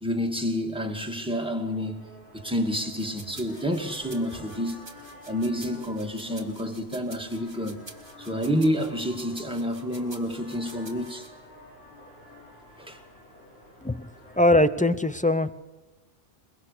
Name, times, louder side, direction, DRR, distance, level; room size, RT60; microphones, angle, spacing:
voice 1, 0.0-4.9 5.3-7.8 8.2-11.3 12.8-13.0, equal, 5° right, 2.0 m, -29 dB
sound 1, 1.0-14.5, left 1 dB, 75° left, 6.1 m, -50 dB
sound 2, 3.0-11.3, right 2 dB, 25° right, 1.8 m, -48 dB
voice 2, 14.3-15.5, left 1 dB, 10° left, 0.4 m, -21 dB
22.5 x 21.5 x 6.7 m
omnidirectional pair, 1.1 m